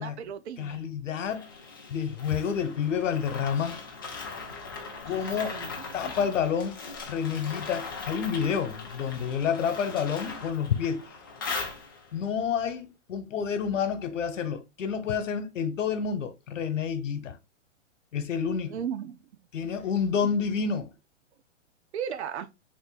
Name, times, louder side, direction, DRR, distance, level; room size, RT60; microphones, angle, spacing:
voice 1, 0.0-0.8 5.1-6.4 18.7-19.4 20.1-20.4 21.9-22.5, right 8 dB, 60° right, 0.6 m, -37 dB
voice 2, 0.6-1.5 1.9-3.8 5.0-5.6 5.9-6.8 7.0-11.0 12.1-17.4 18.1-18.7 19.5-20.9, left 7 dB, 90° left, 1.0 m, -29 dB
sound 1, 1.3-12.2, left 4 dB, 20° left, 0.4 m, -39 dB
3.9 x 2.6 x 3.9 m
hypercardioid pair, 165°, 37 cm